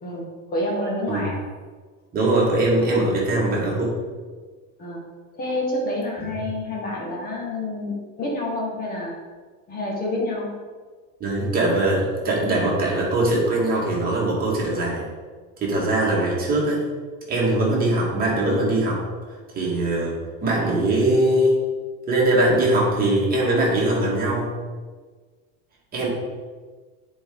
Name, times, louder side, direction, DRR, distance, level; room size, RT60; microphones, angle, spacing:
voice 1, 0.0-1.4 4.8-5.0 5.3-9.1 9.7-10.6, left 1 dB, 20° left, -2 dB, 1.9 m, -28 dB
voice 2, 2.1-4.0 6.4-6.5 11.2-15.1 15.6-16.9 17.3-19.0 19.5-21.6 22.1-24.5 25.9-26.1, right 1 dB, 20° right, -4 dB, 2.0 m, -21 dB
9.6 x 4.6 x 3.9 m, 1.4 s
supercardioid pair, 150°, 39 cm